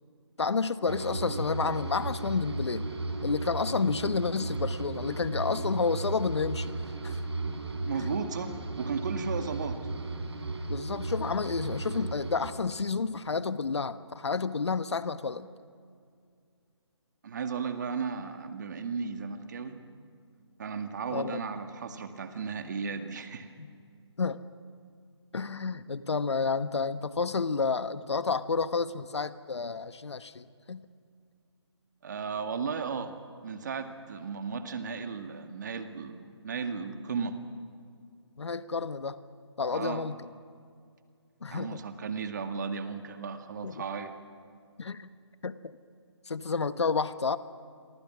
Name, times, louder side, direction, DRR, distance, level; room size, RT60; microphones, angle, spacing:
voice 1, 0.4-2.9 3.2-6.7 7.0-7.2 8.0-8.1 10.7-15.5 21.1-21.3 23.6-23.7 24.2-24.4 25.3-30.9 38.4-39.2 39.6-40.2 41.4-41.8 43.6-43.8 44.8-45.1 45.4-45.8 46.3-47.4, left 4 dB, 70° left, 13 dB, 1.2 m, -30 dB
sound 1, 0.9-12.5, right 2 dB, 70° right, 4.6 m, -35 dB
voice 2, 7.9-9.8 17.2-19.8 20.6-23.5 32.0-33.2 33.4-37.4 39.7-40.1 41.5-44.1, right 5 dB, 40° right, 7 dB, 2.0 m, -35 dB
29.5 x 24.0 x 6.2 m, 2.3 s
hypercardioid pair, 160°, 15 cm